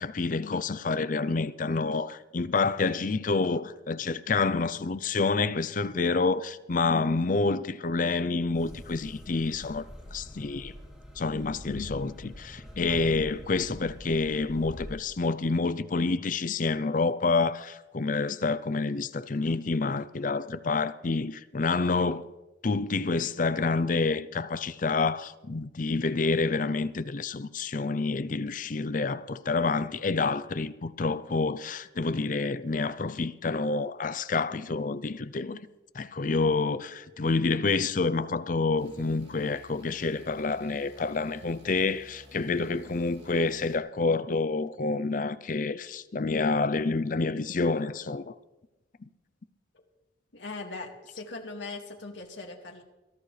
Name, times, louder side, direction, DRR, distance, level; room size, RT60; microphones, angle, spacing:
voice 1, 0.0-9.8 10.1-10.7 11.2-22.3 22.6-35.6 35.9-48.3, left 3 dB, 45° left, 0.5 m, -28 dB
sound 1, 8.5-15.0, equal, 5° right, 3.0 m, -44 dB
sound 2, 38.8-43.8, equal, 35° right, 3.8 m, -54 dB
voice 2, 50.3-52.8, left 3 dB, 75° left, 2.1 m, -40 dB
22.0 x 13.0 x 3.3 m
head